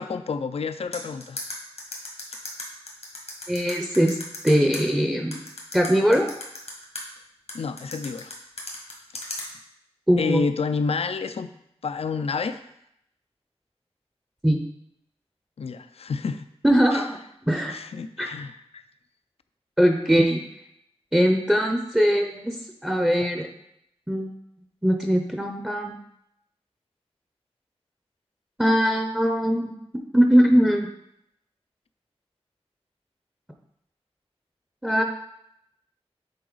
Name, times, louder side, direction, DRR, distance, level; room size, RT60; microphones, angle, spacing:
voice 1, 0.0-1.4 7.5-8.3 10.2-11.5 11.8-12.6 15.6-16.5 16.9-17.0 17.7-18.8, left 5 dB, 70° left, 11 dB, 0.4 m, -29 dB
sound 1, 0.9-4.8 5.3-7.0 7.5-9.4, left 2 dB, 90° left, 1.6 m, -35 dB
voice 2, 3.5-4.2 4.4-5.4 5.7-6.3 10.1-10.4 14.4-14.6 16.6-17.2 17.5-17.8 18.2-18.3 19.8-20.4 21.1-22.6 22.8-23.5 24.1-24.3 24.8-26.0 28.6-29.7 30.1-30.9 34.8-35.0, equal, 5° right, 3 dB, 0.6 m, -21 dB
7.8 x 3.8 x 3.9 m, 0.78 s
wide cardioid pair, 70°, 11 cm